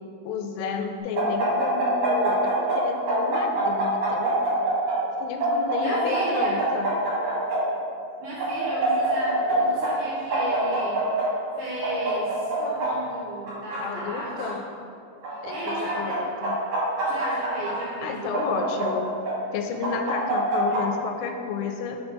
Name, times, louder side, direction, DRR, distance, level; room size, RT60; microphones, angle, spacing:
voice 1, 0.2-4.4 5.2-6.9 13.8-14.6 15.4-16.6 18.0-19.1 19.5-22.0, left 5 dB, 85° left, 4 dB, 3.1 m, -31 dB
sound 1, 1.1-2.8 3.1-4.9 5.4-7.6 8.4-9.5 9.8-9.9 10.3-11.2 11.8-12.9 13.5-14.4 15.2-16.1 16.4-17.7 18.3-19.3 19.8-20.8, right 3 dB, 50° right, 2.3 m, -25 dB
voice 2, 5.8-6.6 8.2-11.0 11.6-14.6 15.3-16.2 17.0-18.5, right 1 dB, 80° right, -6 dB, 2.3 m, -35 dB
6.7 x 5.4 x 4.4 m, 2.5 s
omnidirectional pair, 5.8 m